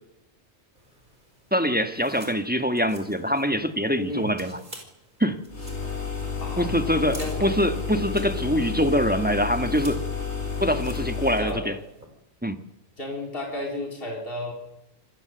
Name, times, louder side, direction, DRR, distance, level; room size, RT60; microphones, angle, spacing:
sound 1, 0.8-12.1, right 1 dB, 45° right, 5.2 m, -49 dB
voice 1, 1.5-4.6 5.2-5.4 6.6-10.0 10.6-11.7 12.4-12.6, equal, 10° right, 1.5 m, -24 dB
voice 2, 4.0-4.3 6.4-7.5 11.4-11.7 13.0-14.5, left 1 dB, 55° left, 4.0 m, -33 dB
sound 2, 5.5-11.5, left 6 dB, 85° left, 4.3 m, -31 dB
26.5 x 21.0 x 7.9 m
omnidirectional pair, 1.1 m